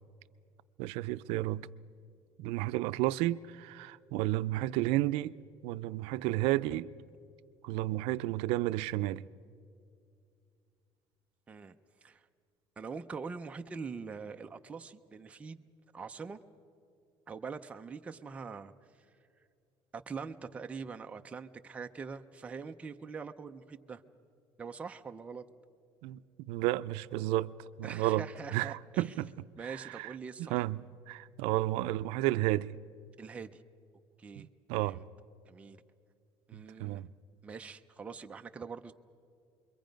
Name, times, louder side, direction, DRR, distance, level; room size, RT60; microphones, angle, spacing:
voice 1, 0.8-1.7 2.4-5.3 5.6-6.9 7.6-9.3 26.0-26.2 26.5-27.5 27.8-28.3 28.5-29.3 29.6-30.1 30.4-32.7 34.4-35.0 36.5-37.1, right 16 dB, 85° right, 0.4 m, -32 dB
voice 2, 12.8-15.7 15.9-16.4 17.3-18.7 19.9-24.0 24.6-25.4 27.8-29.1 29.6-30.6 33.2-33.6 34.2-34.5 34.8-35.0 35.5-35.8 36.5-37.0 37.4-38.9, right 5 dB, 15° right, 0.4 m, -43 dB
28.0 x 22.5 x 5.2 m
cardioid pair, 175°, 10 cm